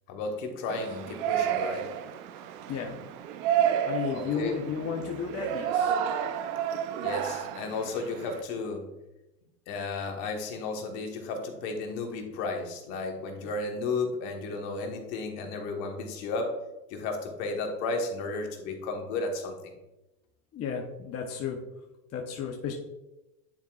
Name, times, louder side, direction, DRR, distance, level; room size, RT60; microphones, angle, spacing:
voice 1, 0.1-1.9 4.1-4.5 7.0-8.9 9.7-16.5 16.9-19.7, left 3 dB, 65° left, 3 dB, 1.5 m, -33 dB
Yell, 0.7-8.4, right 9 dB, 60° right, 0.7 m, -31 dB
voice 2, 3.9-5.9 20.5-21.6 22.1-22.7, left 6 dB, 30° left, 1 dB, 0.8 m, -33 dB
9.6 x 4.6 x 2.4 m, 0.97 s
hypercardioid pair, 100°, 46 cm